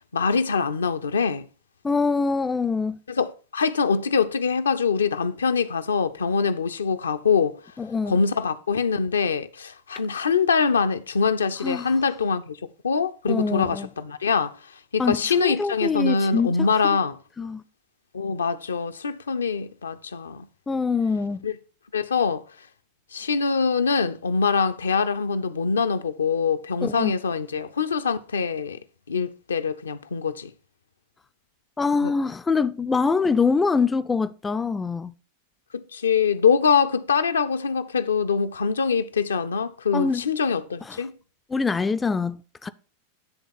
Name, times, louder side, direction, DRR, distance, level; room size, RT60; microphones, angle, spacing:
voice 1, 0.1-1.4 3.1-7.5 8.1-12.6 12.8-14.5 14.9-17.2 18.1-20.5 21.4-21.5 21.9-22.4 23.1-28.8 29.1-30.5 32.0-32.1 35.7-41.1, left 5 dB, 70° left, 0.5 m, -24 dB
voice 2, 1.8-3.0 7.8-8.2 11.6-11.9 13.3-13.9 15.0-16.5 16.9-17.0 17.4-17.6 20.7-21.4 26.8-27.1 31.8-35.1 39.9-40.2 40.9-41.0 41.5-42.7, left 4 dB, 15° left, 0.3 m, -24 dB
9.9 x 3.5 x 5.5 m
figure-of-eight pair, 90°, 0 cm